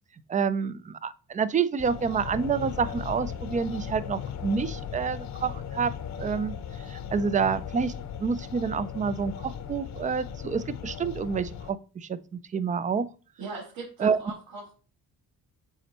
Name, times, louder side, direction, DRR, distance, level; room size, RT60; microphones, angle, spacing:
voice 1, 0.3-5.9 6.2-6.6 6.9-7.9 8.2-13.1 14.0-14.2, right 6 dB, 20° right, 15 dB, 0.4 m, -28 dB
sound 1, 1.8-11.7, left 8 dB, 50° left, 0.7 m, -37 dB
voice 2, 13.4-14.7, right 3 dB, 70° right, -8 dB, 3.5 m, -39 dB
8.0 x 4.3 x 2.9 m, 0.36 s
cardioid pair, 130°, 37 cm